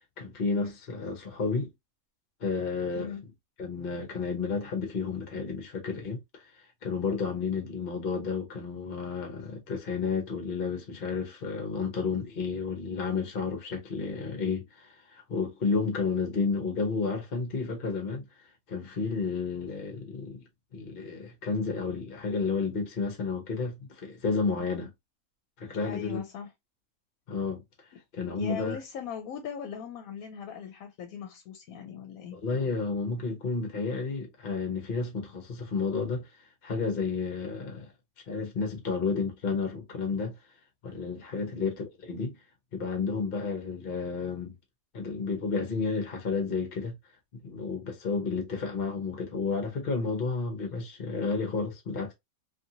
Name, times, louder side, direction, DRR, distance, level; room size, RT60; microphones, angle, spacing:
voice 1, 0.2-1.7 2.4-3.2 3.6-18.3 18.7-20.4 20.7-24.9 25.6-26.2 27.3-27.6 28.1-28.8 32.3-37.9 38.3-40.4 40.8-42.4 42.7-44.5 44.9-46.9 47.4-52.1, left 4 dB, 45° left, 0.8 m, -31 dB
voice 2, 25.8-26.5 28.4-32.4 41.3-41.7, left 7 dB, 75° left, 1.0 m, -39 dB
2.6 x 2.5 x 2.7 m
omnidirectional pair, 1.5 m